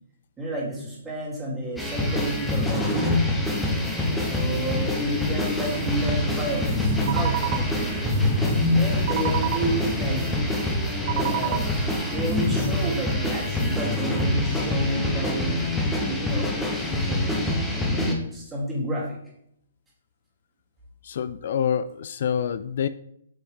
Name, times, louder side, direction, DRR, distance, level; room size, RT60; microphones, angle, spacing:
voice 1, 0.4-3.0 4.2-8.1 8.7-10.3 11.1-11.7 12.1-15.7 16.0-19.2, right 1 dB, 10° right, -5 dB, 2.9 m, -31 dB
sound 1, 1.8-18.1, left 1 dB, 5° left, 1.2 m, -25 dB
sound 2, 5.6-12.7, right 11 dB, 40° right, 0.6 m, -32 dB
voice 2, 21.0-22.9, left 8 dB, 60° left, 13 dB, 0.3 m, -26 dB
8.3 x 5.7 x 3.5 m, 0.73 s
hypercardioid pair, 145°, 0 cm